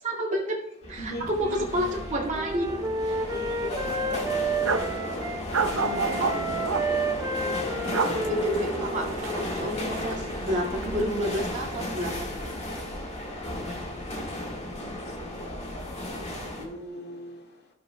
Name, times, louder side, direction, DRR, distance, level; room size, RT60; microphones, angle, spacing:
voice 1, 0.0-0.6 0.9-2.8 3.1-3.3 6.2-6.4 8.2-12.3, equal, 35° right, -4 dB, 2.2 m, -30 dB
sound 1, 0.8-16.7, left 1 dB, 35° left, 1.8 m, -34 dB
voice 2, 1.0-1.7 3.3-4.3 5.5-6.6 9.5-9.7 14.9-16.3 16.6-17.5, left 1 dB, 55° left, 1 dB, 1.7 m, -39 dB
sound 2, 1.2-1.4 1.6-1.8 2.2-2.9 3.2-3.3 3.9-5.0 5.5-6.9 7.7-8.1 8.6-10.5 10.8-11.6, right 4 dB, 70° right, 0.7 m, -30 dB
Wind instrument woodwind instrument, 1.9-5.4 5.8-9.5, right 3 dB, 20° right, 0.7 m, -31 dB
13.0 x 8.0 x 2.3 m, 0.81 s
head